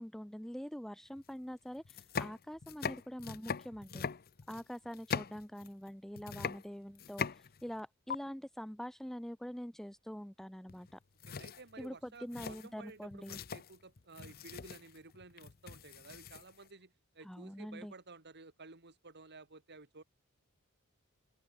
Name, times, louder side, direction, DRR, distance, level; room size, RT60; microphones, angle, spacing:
voice 1, 0.0-4.1 4.5-11.0 11.8-13.4 17.2-17.9, equal, ahead, 0.5 m, -45 dB
sound 1, 1.2-1.3 1.8-5.9 6.2-7.8 8.1-8.2 10.7-10.9 11.2-16.7, left 6 dB, 45° left, 0.7 m, -41 dB
voice 2, 11.3-20.0, right 3 dB, 55° right, 3.8 m, -54 dB
open air
head